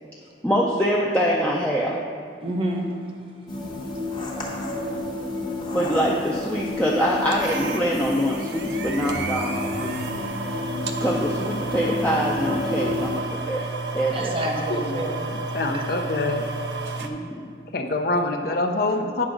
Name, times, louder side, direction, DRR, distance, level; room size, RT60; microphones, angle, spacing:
voice 1, 0.4-2.0 4.6-4.8 5.7-10.0 11.0-13.7 13.9-14.3 15.7-15.8 17.0-17.5, equal, 10° left, -4 dB, 0.5 m, -24 dB
voice 2, 2.4-2.9 3.9-4.0 5.7-5.8 14.1-15.2 15.5-15.8, right 1 dB, 30° right, 1 dB, 0.8 m, -29 dB
sound 1, 3.5-13.2, left 2 dB, 25° left, 1.1 m, -30 dB
sound 2, 7.3-17.1, right 3 dB, 70° right, 0.5 m, -32 dB
voice 3, 15.3-16.5 17.7-19.2, left 2 dB, 55° left, 4 dB, 0.6 m, -25 dB
9.5 x 5.9 x 3.8 m, 2.3 s
head